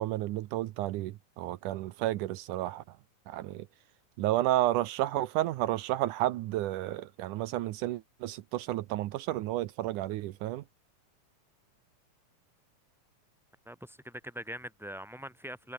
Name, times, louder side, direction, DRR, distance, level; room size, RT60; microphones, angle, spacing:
voice 1, 0.0-2.8 3.3-3.7 4.2-10.6, right 15 dB, 80° right, 2.3 m, -31 dB
voice 2, 13.7-15.7, equal, ahead, 7.3 m, -42 dB
omnidirectional pair, 3.7 m